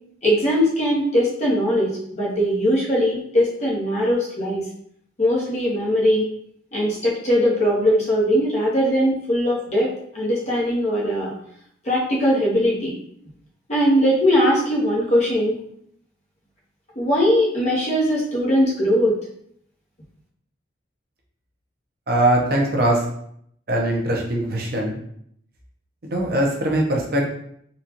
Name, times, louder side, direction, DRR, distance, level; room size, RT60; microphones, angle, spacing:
voice 1, 0.2-4.6 5.2-6.3 6.7-11.3 11.8-13.0 13.7-15.6 16.9-19.1, equal, 40° left, -5 dB, 1.0 m, -20 dB
voice 2, 22.1-23.1 23.7-24.9 26.0-27.3, right 1 dB, 55° right, -1 dB, 0.7 m, -21 dB
4.0 x 2.4 x 2.8 m, 0.69 s
head